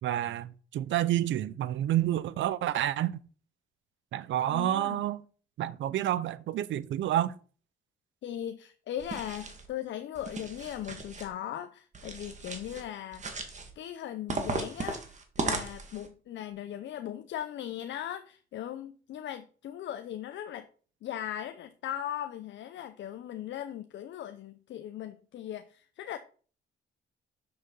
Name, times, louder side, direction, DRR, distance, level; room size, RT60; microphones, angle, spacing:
voice 1, 0.0-3.1 4.1-5.2 5.6-7.3, right 12 dB, 70° right, 0.6 m, -29 dB
voice 2, 4.5-5.0 8.2-13.3 13.8-20.7 21.0-26.2, left 11 dB, 65° left, 0.6 m, -38 dB
sound 1, 9.0-9.7 10.1-11.3 11.9-12.8 13.1-13.7 14.3-16.1, right 3 dB, 35° right, 1.8 m, -36 dB
6.8 x 6.6 x 3.9 m
cardioid pair, 90°, 20 cm